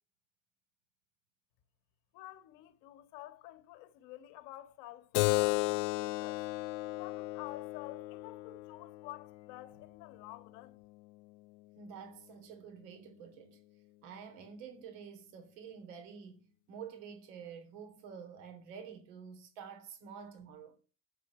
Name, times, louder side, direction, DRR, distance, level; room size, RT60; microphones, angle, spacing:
voice 1, 2.1-6.4 6.9-10.8, left 15 dB, 55° left, 1.9 m, -50 dB
Keyboard (musical), 5.1-10.3, left 21 dB, 75° left, 0.5 m, -34 dB
voice 2, 11.7-13.6 14.0-20.7, right 7 dB, 75° right, 3.5 m, -49 dB
9.4 x 7.5 x 8.3 m
cardioid pair, 170°, 39 cm